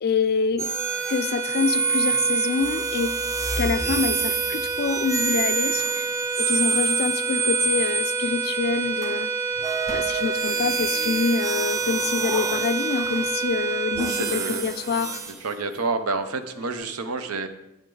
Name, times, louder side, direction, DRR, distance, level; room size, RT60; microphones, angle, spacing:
voice 1, 0.0-0.7 1.1-3.2 3.6-6.1 6.4-9.3 9.9-15.2, left 5 dB, 45° left, 0.4 m, -26 dB
sound 1, 0.6-8.9 9.6-15.3, right 4 dB, 15° right, 0.5 m, -28 dB
sound 2, 0.6-15.2, right 4 dB, 50° right, 2.5 m, -29 dB
sound 3, 5.5-7.8 8.5-9.2 9.8-10.8 11.5-13.6 13.9-14.0 14.4-16.5, equal, 30° right, 1.9 m, -42 dB
voice 2, 14.0-14.7 15.3-17.5, right 3 dB, 85° right, 0.7 m, -29 dB
8.9 x 8.2 x 3.8 m
head